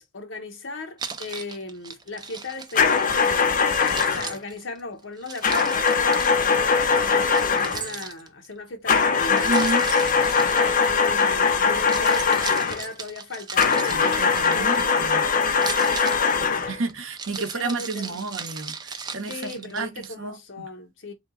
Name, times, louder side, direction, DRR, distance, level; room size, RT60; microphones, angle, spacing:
voice 1, 0.0-3.6 4.1-9.6 10.5-16.8 17.4-18.3 19.2-21.1, left 2 dB, 60° left, 1.0 m, -37 dB
Keys jangling, 1.0-3.4 3.8-6.5 7.3-8.5 9.4-11.2 11.7-15.0 15.5-20.1, right 5 dB, 20° right, 0.4 m, -37 dB
sound 1, 2.8-4.3 5.4-7.9 8.9-12.8 13.6-16.8, left 5 dB, 40° left, 0.5 m, -21 dB
voice 2, 9.5-9.8 13.9-14.7 15.0-15.2 16.8-18.7 19.1-19.3 19.7-19.9 20.2-20.3, right 3 dB, 65° right, 0.8 m, -29 dB
3.5 x 2.8 x 3.6 m
head